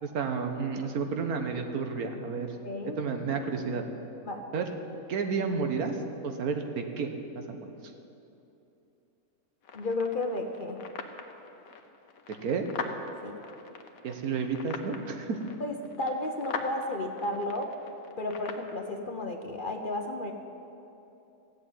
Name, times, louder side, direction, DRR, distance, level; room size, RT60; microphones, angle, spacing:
voice 1, 0.0-2.5 3.0-3.8 4.5-4.7 5.1-6.0 6.2-7.1 7.3-7.7 12.4-12.7 14.0-15.4, right 5 dB, 80° right, 5 dB, 1.6 m, -31 dB
voice 2, 2.6-3.0 4.2-4.4 9.7-10.9 13.2-13.4 15.6-17.7 18.2-20.3, left 2 dB, 40° left, 4 dB, 0.9 m, -33 dB
sound 1, 9.6-18.7, left 5 dB, 70° left, 1.4 m, -42 dB
15.5 x 7.7 x 9.2 m, 2.9 s
omnidirectional pair, 1.5 m